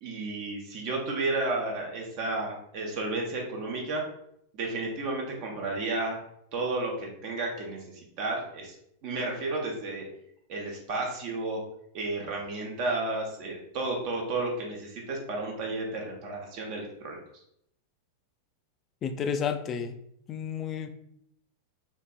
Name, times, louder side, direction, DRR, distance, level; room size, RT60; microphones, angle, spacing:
voice 1, 0.0-4.0 4.5-6.2 6.5-8.7 9.0-10.1 10.5-11.6 11.9-17.2, right 2 dB, 45° right, 0 dB, 0.9 m, -32 dB
voice 2, 19.0-20.0 20.3-20.9, left 7 dB, 30° left, 8 dB, 0.3 m, -31 dB
3.8 x 2.5 x 2.3 m, 0.72 s
figure-of-eight pair, 90°, 0 cm